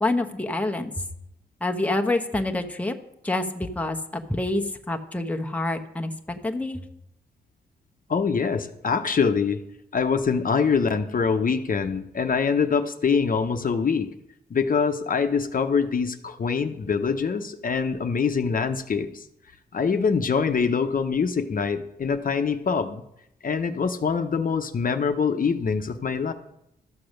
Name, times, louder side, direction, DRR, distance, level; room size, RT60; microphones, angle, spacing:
voice 1, 0.0-1.1 1.6-2.9 3.2-6.8, left 2 dB, 10° left, 4 dB, 1.0 m, -27 dB
voice 2, 8.1-9.6 9.9-14.1 14.5-19.2 19.7-23.0 23.4-26.3, left 5 dB, 55° left, 7 dB, 0.9 m, -24 dB
13.0 x 6.9 x 6.5 m, 0.79 s
cardioid pair, 85°, 17 cm